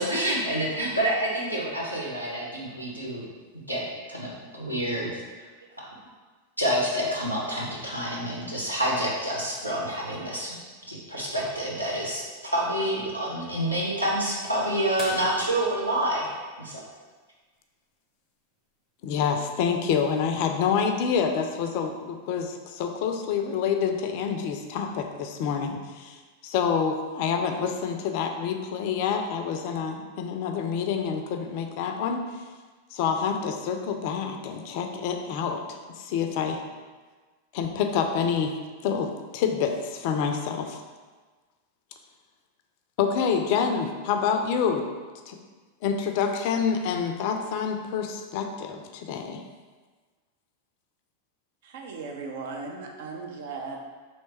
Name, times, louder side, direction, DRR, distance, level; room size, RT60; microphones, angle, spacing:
voice 1, 0.0-3.3 3.7-5.1 5.4-5.5 6.6-10.6 10.9-16.3 16.6-16.8, right 1 dB, 85° right, -5 dB, 0.9 m, -28 dB
sound 1, 15.0-17.4 19.4-19.5 21.7-21.8 23.5-23.8 24.6-24.7, right 1 dB, 25° right, 1.0 m, -42 dB
voice 2, 19.0-32.2 32.9-36.6 37.5-38.5 38.8-40.8 43.0-44.9 45.3-45.4 45.8-49.4, left 6 dB, 45° left, 5 dB, 0.4 m, -27 dB
voice 3, 51.6-53.8, right 4 dB, 55° right, 1 dB, 0.6 m, -37 dB
3.3 x 3.0 x 4.3 m, 1.4 s
figure-of-eight pair, 90°, 0 cm